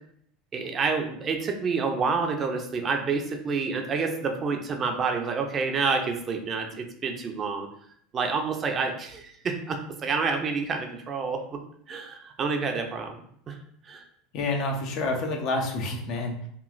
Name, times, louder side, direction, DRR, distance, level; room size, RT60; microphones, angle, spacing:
voice 1, 0.5-7.7 8.1-11.6 11.9-13.2 13.5-13.6 13.8-14.0, right 4 dB, 35° right, 4 dB, 0.4 m, -28 dB
voice 2, 14.3-16.5, left 2 dB, 55° left, 3 dB, 0.6 m, -28 dB
2.9 x 2.3 x 2.4 m, 0.65 s
hypercardioid pair, 90°, 0 cm